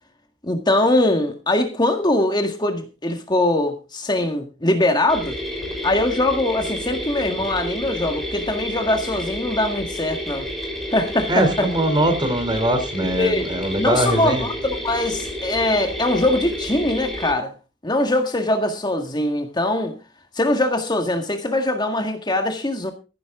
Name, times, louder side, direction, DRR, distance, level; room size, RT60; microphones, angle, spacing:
voice 1, 0.4-5.3 5.8-10.5 10.9-11.7 13.0-13.5 13.8-17.5 17.8-19.9 20.3-22.9, left 1 dB, 25° left, 1.8 m, -22 dB
sound 1, 5.1-17.3, equal, ahead, 7.2 m, -30 dB
voice 2, 11.3-14.4, right 1 dB, 25° right, 3.2 m, -21 dB
15.5 x 11.0 x 3.8 m
head